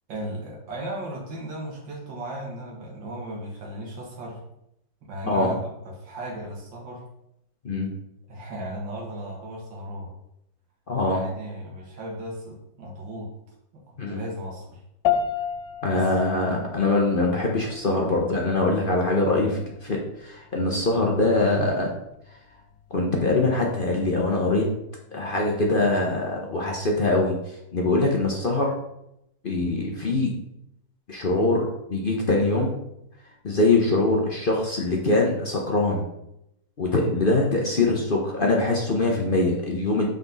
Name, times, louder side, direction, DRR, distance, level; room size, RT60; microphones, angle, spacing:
voice 1, 0.1-4.4 5.0-7.0 8.3-10.1 11.0-13.3 13.7-14.8 15.9-16.1 17.5-17.8, right 1 dB, 75° right, -2 dB, 2.4 m, -36 dB
voice 2, 10.9-11.2 14.0-14.2 15.8-21.9 22.9-24.7 25.1-27.4 27.7-28.7 29.4-30.3 31.1-32.7 33.4-36.0 36.8-40.1, left 2 dB, 45° left, 0 dB, 0.7 m, -23 dB
sound 1, 15.0-24.6, left 8 dB, 85° left, 1.4 m, -34 dB
6.0 x 5.3 x 3.9 m, 0.82 s
omnidirectional pair, 2.1 m